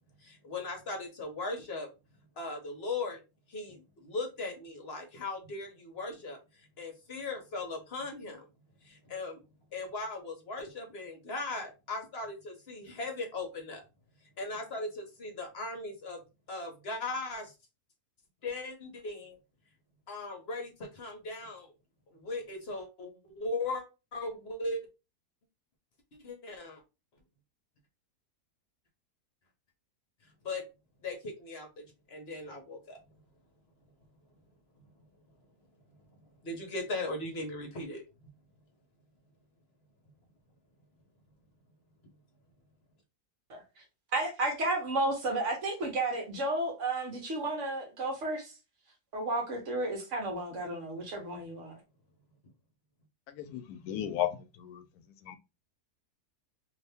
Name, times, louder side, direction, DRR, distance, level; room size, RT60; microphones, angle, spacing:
voice 1, 0.2-1.9 2.4-3.2 3.5-8.4 8.8-9.4 9.7-13.8 14.4-16.2 16.5-17.5 18.4-19.4 20.1-21.7 22.1-23.8 24.1-24.8 26.2-26.8 30.4-30.6 31.0-33.0 36.4-38.0, left 2 dB, 50° left, 0.9 m, -38 dB
voice 2, 44.1-48.5 49.1-51.7, right 2 dB, 55° right, 1.2 m, -32 dB
voice 3, 53.5-54.3 54.6-54.8 55.3-55.4, left 12 dB, 75° left, 1.0 m, -33 dB
2.7 x 2.7 x 3.4 m
omnidirectional pair, 1.7 m